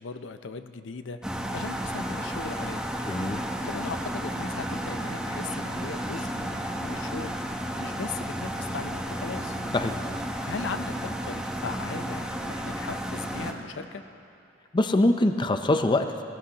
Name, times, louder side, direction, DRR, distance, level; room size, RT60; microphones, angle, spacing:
voice 1, 0.0-2.9 3.6-9.6 10.4-14.0, left 4 dB, 90° left, 9 dB, 0.6 m, -38 dB
sound 1, 1.2-13.5, equal, 5° right, 0.9 m, -32 dB
voice 2, 3.0-3.4 9.7-10.0 14.7-16.2, left 2 dB, 25° left, 8 dB, 0.5 m, -23 dB
18.5 x 18.0 x 2.9 m, 2.6 s
head